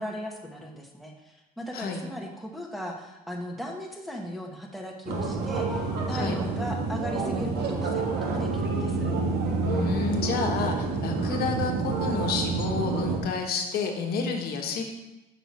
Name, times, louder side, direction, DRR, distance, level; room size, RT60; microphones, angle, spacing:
voice 1, 0.0-9.1, equal, ahead, 0 dB, 1.1 m, -37 dB
sound 1, 5.1-13.2, right 3 dB, 75° right, 1.1 m, -28 dB
voice 2, 9.6-14.8, left 4 dB, 65° left, 3 dB, 1.2 m, -30 dB
5.9 x 5.5 x 4.3 m, 1.0 s
cardioid pair, 110°, 17 cm